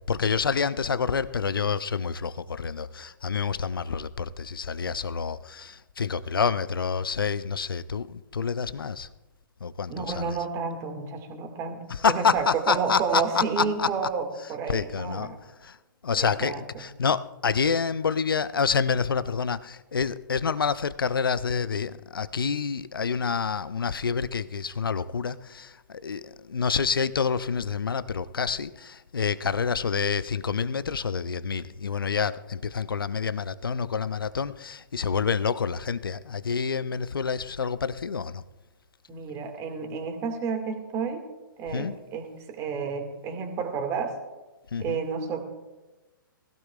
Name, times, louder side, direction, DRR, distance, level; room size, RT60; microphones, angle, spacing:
voice 1, 0.1-9.1 9.6-10.4 11.9-13.9 14.7-15.3 15.6-15.8 16.0-38.4 41.7-42.0 44.7-45.0, left 6 dB, 75° left, 0.6 m, -28 dB
voice 2, 9.9-15.4 16.2-16.8 39.1-41.2 41.6-44.1 44.8-45.4, right 5 dB, 25° right, 2.1 m, -31 dB
20.5 x 16.0 x 2.5 m
figure-of-eight pair, 120°, 12 cm